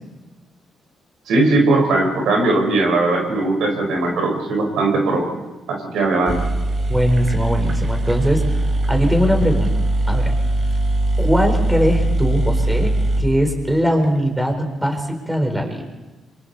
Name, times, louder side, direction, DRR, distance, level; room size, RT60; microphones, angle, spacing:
voice 1, 1.3-5.3 5.7-6.4, right 2 dB, 85° right, 2 dB, 4.9 m, -19 dB
sound 1, 6.0-6.1 6.3-14.1, right 1 dB, 55° right, 3.3 m, -21 dB
voice 2, 6.9-8.4 8.9-9.7 10.1-10.3 11.2-15.8, equal, 5° right, 3 dB, 4.6 m, -20 dB
26.5 x 24.0 x 4.3 m, 1.1 s
cardioid pair, 80°, 0 cm